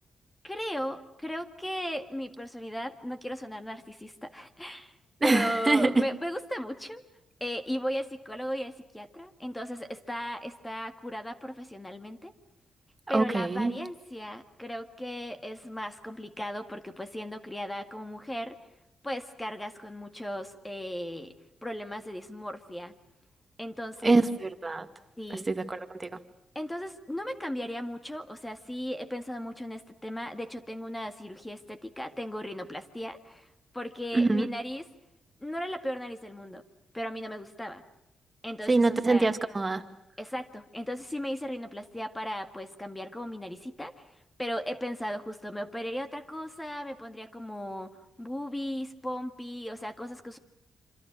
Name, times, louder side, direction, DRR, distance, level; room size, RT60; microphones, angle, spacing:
voice 1, 0.4-4.9 5.2-7.0 7.4-12.3 13.1-18.6 19.0-21.3 21.6-23.0 23.6-24.2 25.2-25.5 26.6-34.8 35.4-36.6 36.9-37.8 38.4-39.3 40.2-50.4, equal, 10° left, 1.8 m, -36 dB
voice 2, 5.2-6.1 13.1-13.8 24.0-24.9 25.3-26.2 34.1-34.5 38.7-39.8, right 3 dB, 20° right, 1.9 m, -25 dB
26.5 x 26.0 x 6.3 m
cardioid pair, 120°, 0 cm